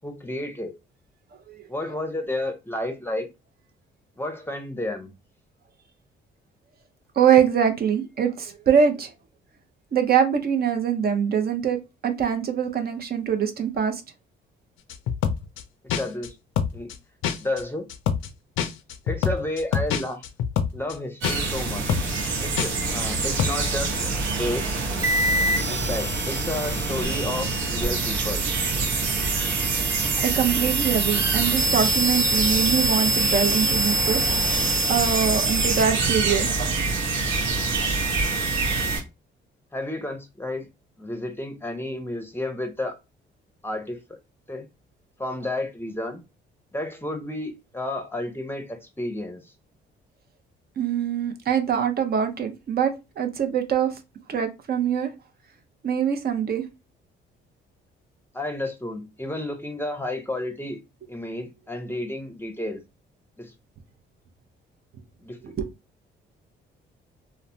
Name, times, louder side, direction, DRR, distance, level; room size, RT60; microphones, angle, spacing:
voice 1, 0.0-0.7 1.7-3.3 4.2-5.1 15.8-16.3 16.7-16.9 17.4-17.9 19.1-20.2 20.7-21.9 22.4-24.7 25.7-28.5 39.7-40.7 41.0-43.0 43.6-44.0 44.5-44.6 45.2-46.2 46.7-49.4 58.3-60.8 61.1-62.8 63.4-63.5 65.2-65.4, left 1 dB, 10° left, 0.6 m, -31 dB
voice 2, 1.5-1.9 7.2-9.1 9.9-14.0 30.2-34.2 34.9-36.5 50.8-53.9 54.3-55.1 55.8-56.6 65.4-65.7, right 7 dB, 50° right, 0.6 m, -23 dB
sound 1, 14.9-15.6 15.9-16.3 16.6-17.0 17.2-17.6 17.9-18.3 18.6-20.9 21.2-21.6 21.9-22.3 22.6-22.9 23.2-23.5, left 8 dB, 80° left, 0.4 m, -26 dB
sound 2, 21.2-39.0, right 3 dB, 75° right, 0.9 m, -27 dB
sound 3, 25.0-39.0, right 2 dB, 15° right, 1.0 m, -27 dB
3.0 x 2.1 x 2.6 m
cardioid pair, 90°, 20 cm